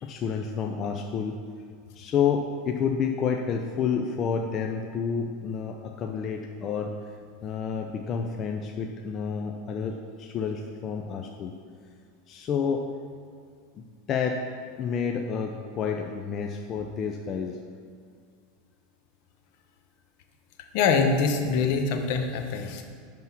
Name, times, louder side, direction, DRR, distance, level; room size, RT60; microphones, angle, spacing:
voice 1, 0.0-1.4 1.9-6.9 7.4-11.5 12.3-12.8 13.8-14.4 14.8-17.6, left 6 dB, 40° left, 3 dB, 0.6 m, -29 dB
voice 2, 20.7-22.8, left 5 dB, 60° left, 5 dB, 1.0 m, -24 dB
11.0 x 3.7 x 5.9 m, 2.1 s
hypercardioid pair, 95°, 0 cm